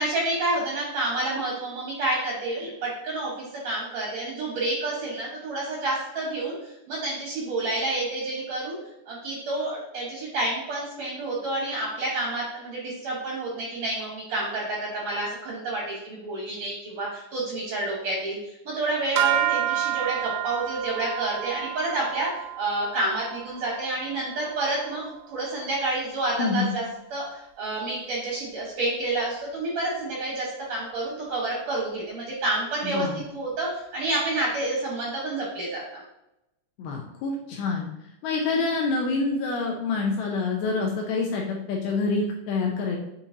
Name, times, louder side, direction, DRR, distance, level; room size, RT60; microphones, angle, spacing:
voice 1, 0.0-8.8 9.1-26.8 27.1-33.1 33.3-36.0, right 2 dB, 70° right, -4 dB, 1.6 m, -29 dB
sound 1, 19.2-25.5, right 12 dB, 85° right, 2.2 m, -30 dB
voice 2, 26.4-26.7 32.8-33.2 36.8-37.9 38.2-43.0, left 4 dB, 80° left, 0 dB, 2.3 m, -27 dB
8.6 x 4.3 x 2.7 m, 0.87 s
omnidirectional pair, 5.0 m